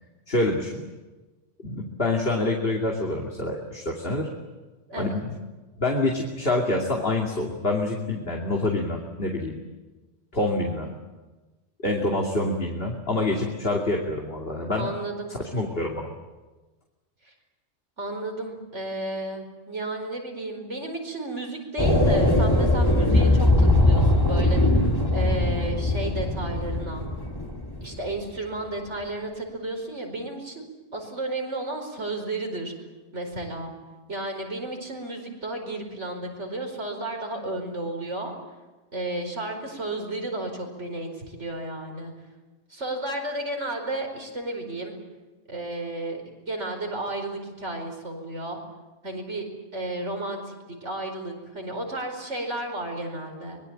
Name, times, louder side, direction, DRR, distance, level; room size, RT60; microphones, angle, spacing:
voice 1, 0.3-0.8 1.6-4.3 5.0-5.3 5.8-9.6 10.3-11.0 11.8-14.9 15.3-16.1, left 2 dB, 55° left, 0 dB, 2.9 m, -26 dB
voice 2, 4.9-5.2 14.8-15.3 17.2-17.3 18.0-27.0 27.8-30.6 30.9-32.7 33.1-33.7 34.1-38.3 38.9-42.1 42.7-45.0 45.5-48.6 49.0-49.4 49.7-50.5 50.8-53.6, right 2 dB, 80° right, 3 dB, 5.3 m, -33 dB
sound 1, 21.8-27.9, left 1 dB, 20° left, 2.9 m, -21 dB
24.5 x 22.0 x 8.9 m, 1.2 s
omnidirectional pair, 1.2 m